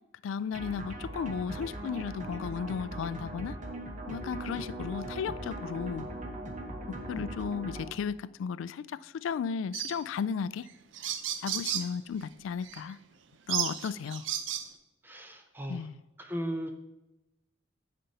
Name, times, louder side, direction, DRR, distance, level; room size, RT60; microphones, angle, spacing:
voice 1, 0.2-3.6 4.1-6.1 7.1-10.7 11.4-13.0 13.5-14.3 15.7-16.0, left 6 dB, 80° left, 0.3 m, -34 dB
sound 1, 0.5-7.9, right 1 dB, 40° right, 1.1 m, -40 dB
sound 2, 9.7-10.0 10.7-10.8 10.9-11.9 12.6-12.8 13.5-14.7, right 10 dB, 70° right, 0.6 m, -33 dB
voice 2, 15.0-15.8 16.2-16.7, equal, 10° right, 0.6 m, -36 dB
9.4 x 5.4 x 4.1 m
head